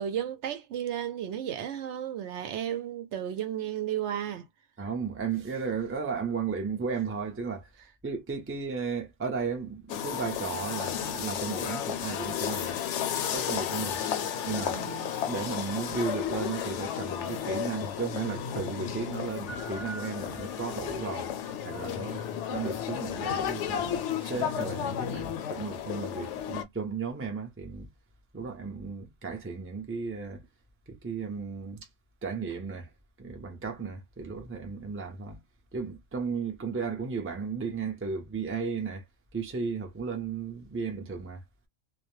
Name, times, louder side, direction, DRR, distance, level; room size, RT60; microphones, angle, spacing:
voice 1, 0.0-4.5 14.7-15.1 17.5-17.6 25.1-25.2, right 10 dB, 70° right, 0.9 m, -34 dB
voice 2, 4.8-7.7 8.0-12.8 13.3-14.0 14.4-14.8 15.3-21.3 21.6-22.2 22.5-27.9 28.3-30.5 30.9-31.9 32.2-32.9 33.2-35.4 35.7-39.0 39.3-41.4, right 5 dB, 15° right, 0.5 m, -34 dB
sound 1, 9.9-26.6, left 9 dB, 75° left, 0.8 m, -33 dB
2.2 x 2.1 x 3.0 m
omnidirectional pair, 1.3 m